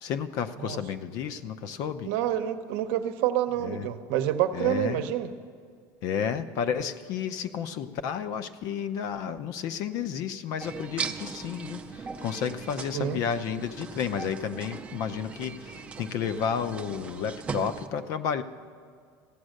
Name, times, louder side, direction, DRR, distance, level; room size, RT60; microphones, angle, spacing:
voice 1, 0.0-2.1 3.6-3.9 4.5-5.0 6.0-18.4, left 7 dB, 50° left, 11 dB, 0.6 m, -32 dB
voice 2, 2.0-5.3 12.9-13.2, right 12 dB, 70° right, 9 dB, 0.8 m, -27 dB
sound 1, 10.6-17.9, right 5 dB, 15° right, 0.5 m, -39 dB
15.0 x 9.0 x 6.4 m, 2.1 s
cardioid pair, 170°, 8 cm